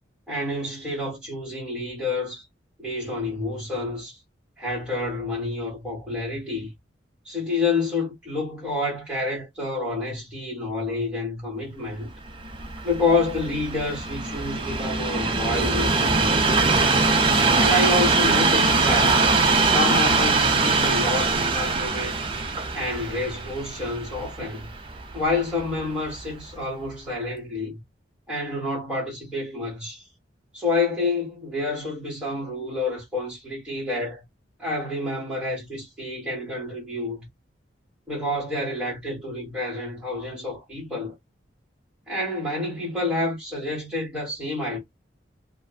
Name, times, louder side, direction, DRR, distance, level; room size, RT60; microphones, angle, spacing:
voice 1, 0.3-2.4 2.8-4.2 4.6-6.7 7.2-12.1 12.8-16.4 17.6-19.2 19.6-22.2 22.7-24.7 25.1-27.8 28.3-30.0 30.5-34.2 34.6-37.3 38.1-41.1 42.1-44.8, left 2 dB, 5° right, 1.4 m, -28 dB
Train, 12.3-25.5 26.2-26.3, right 3 dB, 25° right, 0.4 m, -22 dB
2.5 x 2.4 x 2.3 m
head